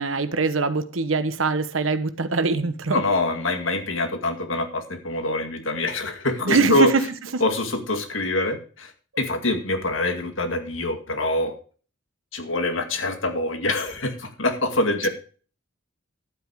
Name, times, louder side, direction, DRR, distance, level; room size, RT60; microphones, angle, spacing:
voice 1, 0.0-3.0 6.4-7.0 7.3-7.4, right 4 dB, 90° right, 1.1 m, -23 dB
voice 2, 2.9-6.9 7.4-8.9 9.2-11.5 12.3-15.1, left 2 dB, 70° left, 2.1 m, -25 dB
12.0 x 8.4 x 4.8 m
head